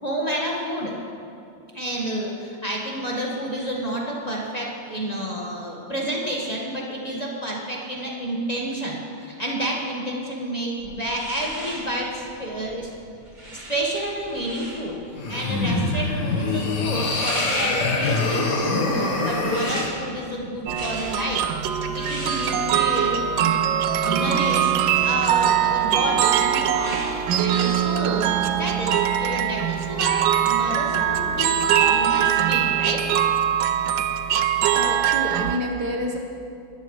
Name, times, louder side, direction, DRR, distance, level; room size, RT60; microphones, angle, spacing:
voice 1, 0.0-0.9 1.7-12.9 13.5-15.0 15.3-21.4 21.9-23.6 24.0-28.3 28.6-33.0, right 1 dB, 20° left, -4 dB, 1.6 m, -29 dB
sound 1, 10.8-27.7, right 1 dB, 20° right, 2.4 m, -39 dB
sound 2, 15.2-19.9, left 3 dB, 60° left, 1.9 m, -24 dB
sound 3, 20.7-35.6, right 10 dB, 80° right, 1.3 m, -22 dB
voice 2, 34.7-36.2, equal, 60° right, 1 dB, 1.7 m, -28 dB
21.0 x 13.0 x 3.3 m, 2.5 s
omnidirectional pair, 2.1 m